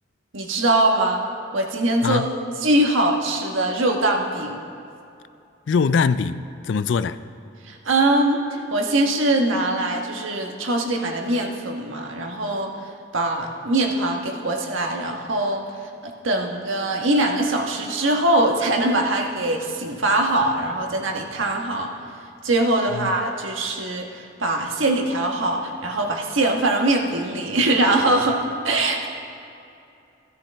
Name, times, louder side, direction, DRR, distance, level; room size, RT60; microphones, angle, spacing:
voice 1, 0.3-1.2 1.5-2.2 2.6-4.6 7.7-12.7 13.1-15.6 16.0-21.9 22.4-28.4 28.6-29.1, right 2 dB, 75° right, 2 dB, 1.3 m, -22 dB
voice 2, 5.7-6.4 6.7-7.2 23.0-23.1, left 5 dB, 65° left, 14 dB, 0.4 m, -21 dB
14.5 x 13.0 x 3.4 m, 2.6 s
head